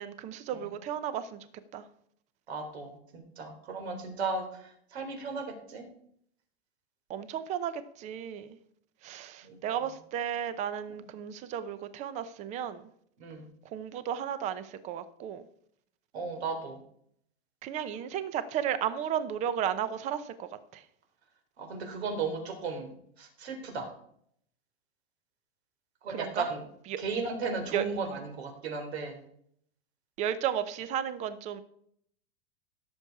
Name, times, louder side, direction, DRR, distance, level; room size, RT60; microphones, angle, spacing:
voice 1, 0.0-1.4 1.7-1.8 7.1-8.5 9.0-12.8 13.7-15.4 17.6-20.8 26.1-26.5 26.9-27.0 27.7-27.8 30.2-31.6, right 9 dB, 20° right, 13 dB, 0.7 m, -34 dB
voice 2, 2.5-5.8 9.5-9.9 13.2-13.5 16.1-16.8 21.6-22.9 23.2-23.9 26.0-26.6 27.0-29.2, right 4 dB, 75° right, 5 dB, 3.9 m, -35 dB
16.5 x 7.1 x 4.8 m, 0.67 s
supercardioid pair, 160°, 32 cm